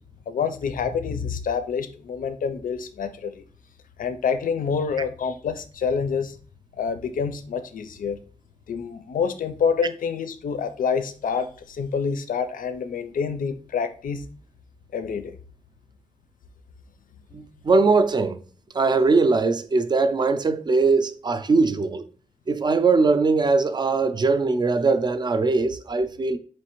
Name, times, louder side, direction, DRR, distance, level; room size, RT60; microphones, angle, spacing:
voice 1, 0.3-3.4 4.0-6.3 6.8-8.2 8.7-14.2 14.9-15.4, left 6 dB, 85° left, 0.4 m, -27 dB
voice 2, 17.3-18.4 18.7-22.0 22.5-26.4, right 3 dB, 35° right, 0.4 m, -21 dB
4.2 x 3.1 x 3.0 m
wide cardioid pair, 135°, 14 cm